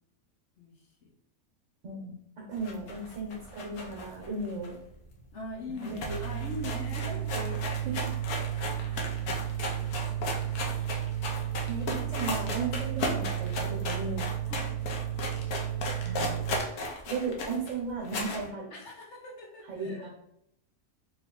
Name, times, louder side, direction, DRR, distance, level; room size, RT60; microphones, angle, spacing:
voice 1, 1.8-4.7 5.8-6.2 7.3-8.1 11.7-14.3 16.0-16.4 17.0-18.7 19.7-20.1, right 4 dB, 55° right, -3 dB, 1.3 m, -36 dB
sound 1, 2.6-5.2 5.5-5.6 5.8-18.5, left 2 dB, 85° left, 1.3 m, -36 dB
voice 2, 5.3-7.2 8.8-9.3 12.0-12.3 14.5-14.7 18.7-20.1, left 2 dB, 55° left, -1 dB, 1.0 m, -43 dB
sound 2, 6.0-16.6, right 12 dB, 25° right, 1.2 m, -33 dB
3.4 x 2.9 x 3.7 m, 0.76 s
omnidirectional pair, 1.6 m